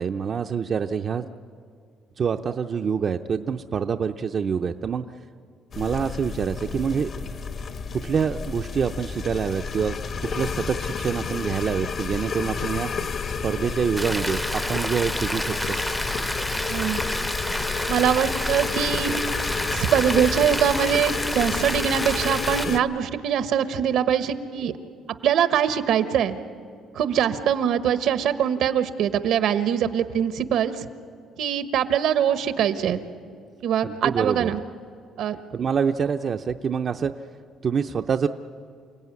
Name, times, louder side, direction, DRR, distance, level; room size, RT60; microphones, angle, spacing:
voice 1, 0.0-1.3 2.2-5.0 5.8-7.1 7.9-12.9 13.4-15.8 33.8-34.5 35.5-37.1 37.6-38.3, right 6 dB, 45° right, 6 dB, 0.6 m, -26 dB
sound 1, 5.7-22.8, left 5 dB, 50° left, 1.1 m, -30 dB
Rain, 14.0-22.6, equal, ahead, 0.7 m, -30 dB
voice 2, 16.7-17.0 17.9-19.2 19.7-24.7 25.2-26.4 26.9-30.9 31.4-33.0 33.6-34.6 35.2-35.4, right 9 dB, 75° right, 10 dB, 1.3 m, -23 dB
28.5 x 17.0 x 9.6 m, 2.3 s
cardioid pair, 115°, 0 cm